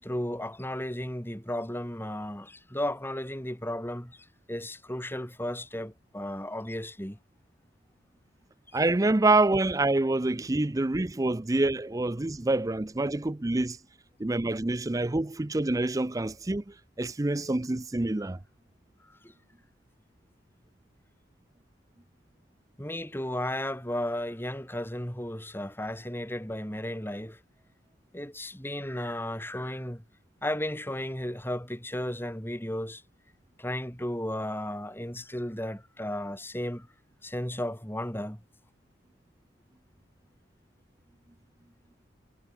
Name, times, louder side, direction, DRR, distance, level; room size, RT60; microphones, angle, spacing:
voice 1, 0.0-7.2 8.7-8.8 19.0-19.3 22.8-27.4 28.1-30.0 30.4-33.0 33.6-36.9 37.2-38.4, left 1 dB, 10° left, 5.7 m, -34 dB
voice 2, 8.7-13.8 14.2-16.6 17.0-18.4, right 2 dB, 15° right, 0.5 m, -26 dB
head